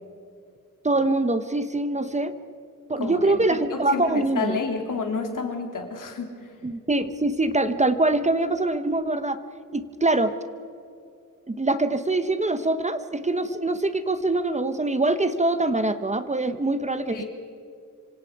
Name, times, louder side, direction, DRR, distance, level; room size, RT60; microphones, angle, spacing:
voice 1, 0.8-2.3 2.9-4.6 6.6-9.4 9.7-10.3 11.5-17.2, right 2 dB, 20° right, 10 dB, 0.9 m, -24 dB
voice 2, 3.0-6.6 17.1-17.2, left 4 dB, 75° left, 3 dB, 3.5 m, -30 dB
26.5 x 25.0 x 4.8 m, 2.5 s
wide cardioid pair, 155°, 32 cm